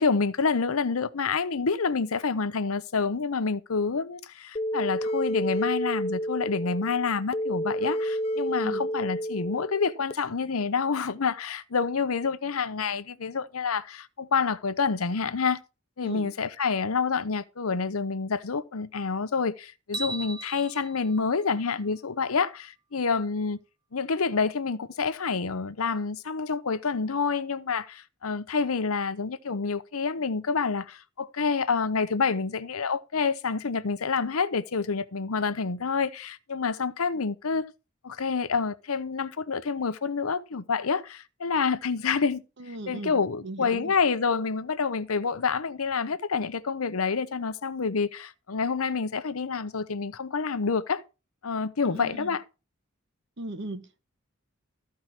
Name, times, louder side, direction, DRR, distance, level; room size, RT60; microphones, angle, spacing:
voice 1, 0.0-15.6 16.0-23.6 23.9-37.7 38.0-42.4 42.9-51.0 51.4-52.4, left 5 dB, 90° left, 0.8 m, -28 dB
sound 1, 4.6-10.1, equal, 30° left, 0.5 m, -30 dB
sound 2, 19.9-22.2, right 3 dB, 20° right, 0.6 m, -39 dB
voice 2, 42.6-43.9 51.8-52.4 53.4-54.0, right 2 dB, 55° right, 1.1 m, -38 dB
14.0 x 4.7 x 5.8 m
head